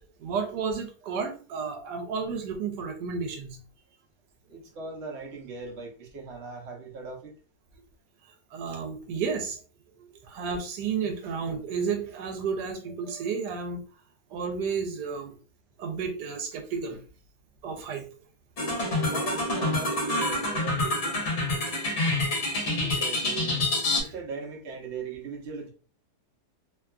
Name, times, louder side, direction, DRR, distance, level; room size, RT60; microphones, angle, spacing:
voice 1, 0.2-3.6 8.5-9.6 10.3-13.8 14.3-15.3 15.8-17.0 17.6-18.1 22.5-22.6, right 5 dB, 85° right, 1.2 m, -32 dB
voice 2, 4.5-7.3 19.1-21.2 21.7-21.9 22.7-23.7 24.0-25.7, right 4 dB, 55° right, 0.9 m, -39 dB
sound 1, 18.6-24.0, left 2 dB, 55° left, 1.1 m, -27 dB
2.9 x 2.2 x 2.3 m
omnidirectional pair, 1.7 m